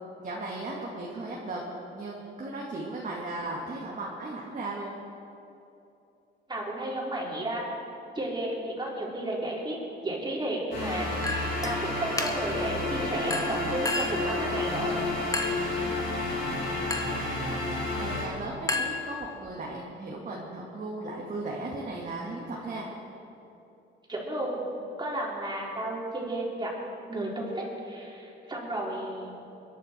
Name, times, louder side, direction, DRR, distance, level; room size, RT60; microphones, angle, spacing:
voice 1, 0.2-1.6 1.9-5.0 18.0-22.9, right 2 dB, 40° right, -4 dB, 2.3 m, -36 dB
voice 2, 6.5-7.6 8.1-9.8 10.0-15.0 24.1-24.6 25.0-26.7 27.1-29.3, right 1 dB, 20° right, -3 dB, 4.1 m, -33 dB
sound 1, 10.7-18.2, left 2 dB, 75° left, 4.3 m, -30 dB
Chink clink, 11.2-11.8 12.2-12.6 13.3-14.3 15.3-15.7 16.9-17.2 18.7-19.5, left 2 dB, 15° left, 1.4 m, -32 dB
22.5 x 11.0 x 4.6 m, 2.8 s
cardioid pair, 90°, 20 cm